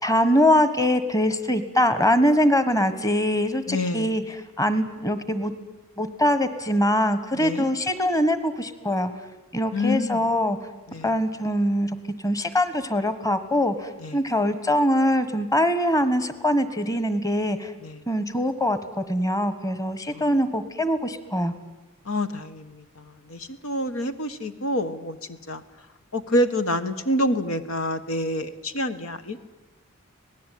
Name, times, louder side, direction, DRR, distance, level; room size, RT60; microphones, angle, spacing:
voice 1, 0.0-4.2 4.6-5.5 6.0-9.1 9.5-10.6 11.0-11.9 12.2-17.7 18.1-21.5, equal, 15° left, 12 dB, 1.4 m, -23 dB
voice 2, 3.7-4.2 7.3-7.7 9.7-10.2 10.9-11.1 14.0-14.2 17.8-18.0 20.1-20.3 22.0-25.6 26.1-29.4, left 1 dB, 85° left, 10 dB, 1.5 m, -27 dB
26.0 x 19.0 x 9.3 m, 1.1 s
head